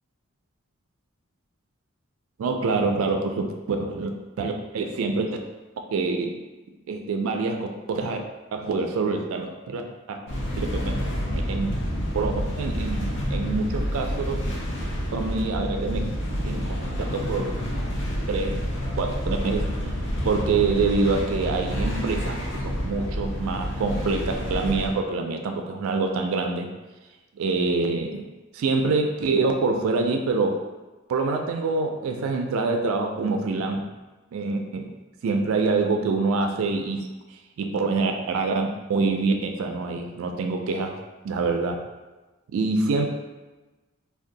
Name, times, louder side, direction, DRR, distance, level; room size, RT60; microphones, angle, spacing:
voice 1, 2.4-4.1 4.4-5.4 5.9-6.3 6.9-7.6 7.9-8.2 8.5-9.8 10.1-10.2 10.6-11.7 12.1-12.3 12.6-14.4 15.1-16.0 16.4-17.6 18.3-18.6 19.0-19.6 20.2-26.7 27.4-28.3 28.5-30.6 31.1-33.8 34.3-34.9 35.2-37.1 37.6-40.9 41.2-41.8 42.5-43.1, right 3 dB, 75° right, 4 dB, 0.3 m, -25 dB
sound 1, 10.3-24.9, equal, 60° left, 0.7 m, -28 dB
2.6 x 2.2 x 3.8 m, 1.2 s
head